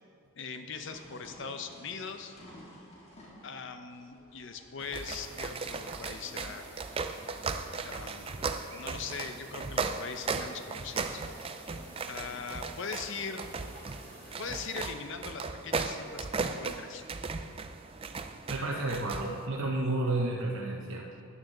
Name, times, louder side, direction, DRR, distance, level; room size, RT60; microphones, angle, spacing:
voice 1, 0.4-2.3 3.4-6.6 7.8-8.3 8.7-11.2 12.1-13.5 14.4-17.0, left 5 dB, 55° left, 7 dB, 0.7 m, -40 dB
sound 1, 0.7-7.9, left 1 dB, 30° left, 1.6 m, -55 dB
sound 2, 4.8-19.5, right 4 dB, 25° right, 0.3 m, -37 dB
sound 3, 4.9-14.9, equal, 10° left, 2.7 m, -52 dB
voice 2, 18.5-21.1, right 2 dB, 60° right, -3 dB, 0.8 m, -31 dB
13.0 x 8.9 x 3.9 m, 2.5 s
head